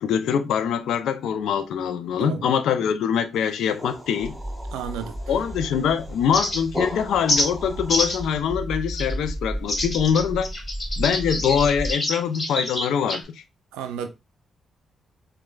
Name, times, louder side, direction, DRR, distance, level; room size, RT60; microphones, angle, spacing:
voice 1, 0.0-4.4 5.3-10.5 11.0-13.4, left 7 dB, 75° left, 0.3 m, -24 dB
sound 1, 3.4-8.4, left 1 dB, 10° right, 2.0 m, -38 dB
sound 2, 4.2-11.9, equal, 20° left, 2.1 m, -34 dB
voice 2, 4.7-5.2 13.7-14.1, right 8 dB, 80° right, 0.4 m, -32 dB
sound 3, 6.3-6.8 7.3-7.5 7.9-8.2 8.9-9.1 9.7-13.2, left 1 dB, 40° left, 1.4 m, -26 dB
4.7 x 2.2 x 2.2 m
hypercardioid pair, 40°, 0 cm